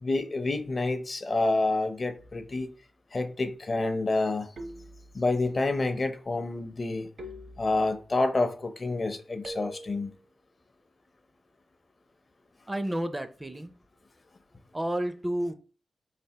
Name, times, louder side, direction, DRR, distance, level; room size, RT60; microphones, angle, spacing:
voice 1, 0.0-2.7 3.1-4.5 5.1-7.1 7.6-10.1, left 2 dB, 40° left, 0.6 m, -28 dB
sound 1, 2.2-2.7 4.6-5.5 7.2-8.1 9.4-10.2, right 1 dB, 65° right, 0.7 m, -44 dB
voice 2, 12.7-13.7 14.7-15.5, right 1 dB, 15° right, 0.4 m, -31 dB
3.9 x 3.3 x 2.8 m
wide cardioid pair, 90°, 0 cm